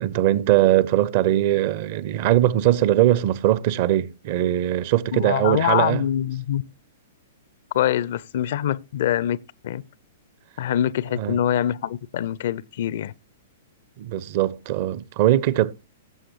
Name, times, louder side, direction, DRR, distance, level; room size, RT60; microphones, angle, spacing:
voice 1, 0.0-6.0 11.2-11.4 14.0-15.7, right 13 dB, 45° right, 0.6 m, -21 dB
voice 2, 5.1-6.6 7.7-9.4 9.6-9.8 10.6-13.1, left 11 dB, 50° left, 0.4 m, -24 dB
16.0 x 7.7 x 3.0 m
figure-of-eight pair, 105°, 0 cm